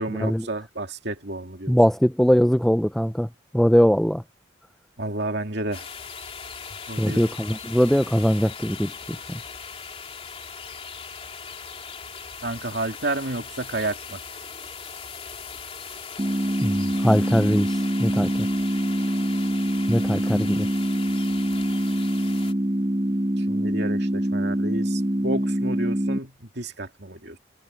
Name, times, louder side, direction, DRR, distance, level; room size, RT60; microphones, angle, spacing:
voice 1, 0.0-1.7 5.0-5.9 6.9-7.3 12.4-14.2 23.1-27.4, right 2 dB, 55° right, 2.7 m, -31 dB
voice 2, 1.7-3.3 3.5-4.2 7.0-8.9 9.3-9.4 16.6-18.5 19.9-20.7, equal, ahead, 0.3 m, -21 dB
sound 1, 5.7-22.5, left 6 dB, 30° left, 3.3 m, -39 dB
sound 2, 16.2-26.2, right 1 dB, 25° right, 1.2 m, -25 dB
head